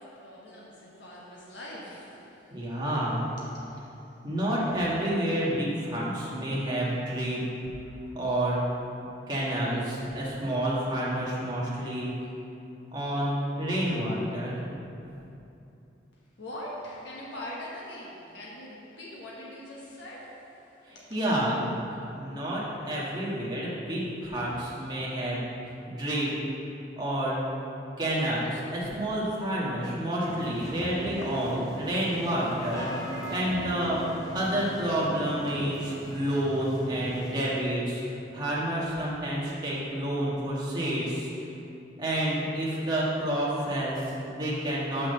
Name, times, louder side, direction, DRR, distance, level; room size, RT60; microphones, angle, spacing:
voice 1, 0.0-2.8 3.5-4.1 16.4-21.2, left 1 dB, 70° left, -5 dB, 1.3 m, -43 dB
voice 2, 2.5-3.3 4.2-7.4 8.1-8.6 9.3-12.1 12.9-14.6 20.8-21.7 22.2-25.5 25.9-26.3 27.0-27.4 28.0-34.0 34.3-38.0 38.3-41.5 42.0-45.1, right 1 dB, 20° right, -7 dB, 1.6 m, -29 dB
sound 1, 30.3-37.3, equal, 15° left, 0.8 m, -39 dB
6.2 x 5.9 x 6.7 m, 2.8 s
head